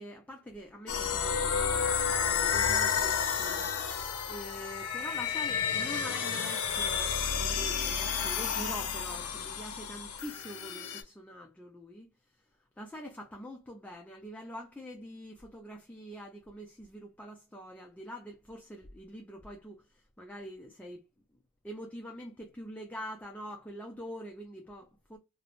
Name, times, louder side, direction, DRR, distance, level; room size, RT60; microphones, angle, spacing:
voice 1, 0.0-12.1 12.8-21.0 21.6-25.2, equal, 5° left, 0.3 m, -45 dB
sound 1, 0.9-11.0, left 7 dB, 85° left, 0.5 m, -31 dB
3.1 x 2.0 x 2.3 m
head